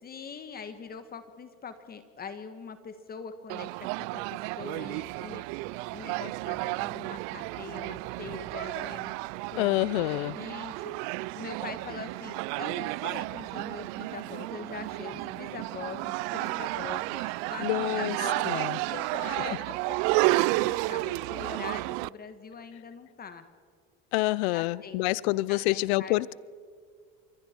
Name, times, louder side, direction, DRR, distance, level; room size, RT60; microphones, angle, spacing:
voice 1, 0.0-3.7 4.1-5.4 5.9-9.1 9.5-9.6 10.0-11.0 11.3-17.2 17.5-17.7 18.0-18.5 18.8-23.5 24.5-26.2, left 6 dB, 30° left, 1.5 m, -43 dB
sound 1, 3.5-22.1, right 23 dB, 70° right, 0.4 m, -32 dB
sound 2, 4.8-18.5, right 1 dB, 5° right, 7.1 m, -60 dB
voice 2, 9.6-10.4 17.6-18.2 18.4-18.8 19.3-19.4 24.1-26.3, left 19 dB, 85° left, 0.6 m, -27 dB
27.0 x 22.5 x 4.5 m
supercardioid pair, 115°, 31 cm